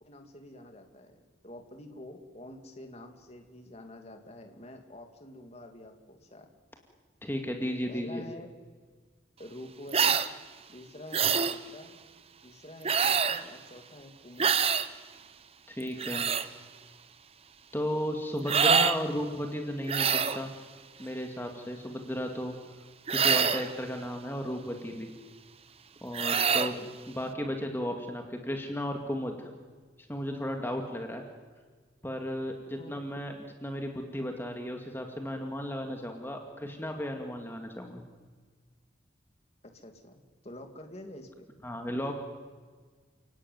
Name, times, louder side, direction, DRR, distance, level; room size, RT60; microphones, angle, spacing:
voice 1, 0.0-6.5 7.8-8.5 9.4-10.2 10.7-11.9 12.4-14.5 27.1-27.2 32.8-33.2 39.6-41.5, left 1 dB, 35° left, 5 dB, 2.7 m, -48 dB
voice 2, 7.2-8.3 15.7-16.3 17.7-20.5 21.0-22.5 23.1-25.1 26.0-26.8 27.1-29.5 30.1-31.2 32.0-33.4 33.6-38.0 41.6-42.2, equal, 10° left, 3 dB, 2.0 m, -34 dB
sound 1, 9.9-10.3 11.1-11.6 12.8-13.4 14.4-14.9 15.8-16.5 18.5-19.0 19.9-20.4 23.1-23.7 26.1-26.7, right 6 dB, 30° right, 0.9 m, -25 dB
29.5 x 18.0 x 9.5 m, 1.5 s
head